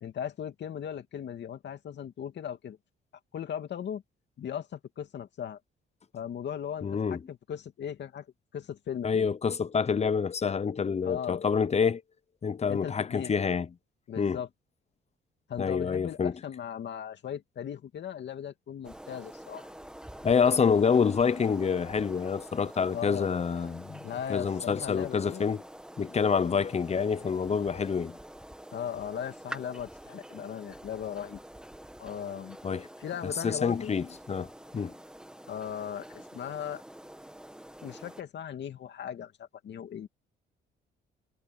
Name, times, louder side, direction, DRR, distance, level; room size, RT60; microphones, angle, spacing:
voice 1, 0.0-2.8 3.3-4.0 4.4-5.6 6.1-8.3 8.5-9.3 11.0-11.4 12.7-13.4 14.1-14.5 15.5-19.7 22.9-23.3 24.0-25.4 28.7-31.4 32.0-32.6 33.0-33.9 35.5-36.8 37.8-40.1, left 9 dB, 60° left, 2.5 m, -38 dB
voice 2, 6.8-7.2 9.0-12.0 12.4-13.7 14.2-14.4 15.6-16.3 20.2-24.0 24.3-25.6 26.0-28.2 32.6-32.9 33.4-34.5 34.7-34.9, left 6 dB, 35° left, 0.8 m, -27 dB
sound 1, 18.8-38.2, right 1 dB, 5° right, 1.7 m, -47 dB
cardioid pair, 90°, 20 cm